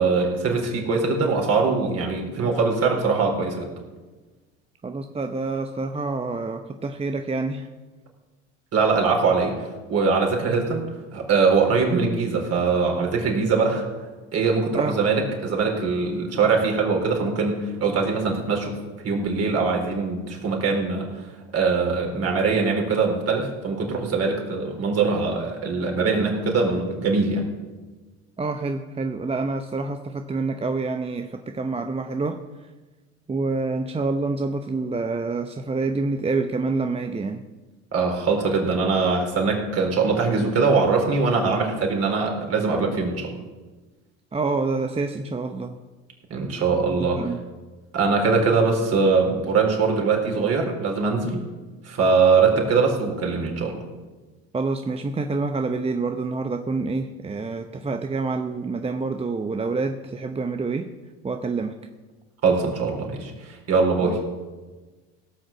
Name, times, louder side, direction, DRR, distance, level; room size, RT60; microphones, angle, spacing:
voice 1, 0.0-3.7 8.7-9.6 9.9-13.8 14.3-18.7 19.0-21.3 21.5-27.4 37.9-43.4 46.3-47.3 47.9-51.4 51.8-53.8 62.4-64.2, right 4 dB, 50° right, 1 dB, 4.2 m, -22 dB
voice 2, 4.8-7.7 14.7-15.0 28.4-32.4 33.3-37.4 44.3-45.8 47.1-47.4 54.5-60.9 61.2-61.7 64.0-64.2, right 3 dB, 20° right, 6 dB, 0.8 m, -27 dB
17.0 x 6.4 x 7.4 m, 1.2 s
supercardioid pair, 85°, 33 cm